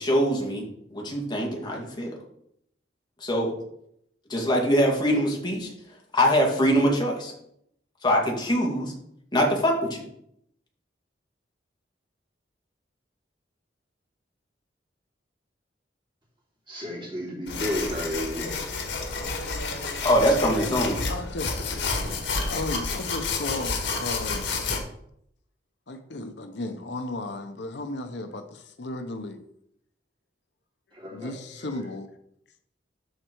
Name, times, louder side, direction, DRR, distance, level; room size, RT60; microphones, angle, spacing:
voice 1, 0.0-2.1 3.2-3.5 4.3-5.7 6.1-7.3 8.0-8.9 9.3-10.0 20.0-21.0, equal, 25° left, -1 dB, 2.2 m, -23 dB
voice 2, 16.7-18.5 30.9-31.9, equal, 25° right, -3 dB, 3.1 m, -33 dB
sound 1, 17.5-24.8, left 4 dB, 80° left, 1.8 m, -30 dB
voice 3, 21.1-21.6 22.5-24.5 25.9-28.4 28.8-29.4 31.1-32.1, left 2 dB, 65° left, 7 dB, 0.8 m, -34 dB
13.0 x 4.5 x 4.6 m, 0.73 s
head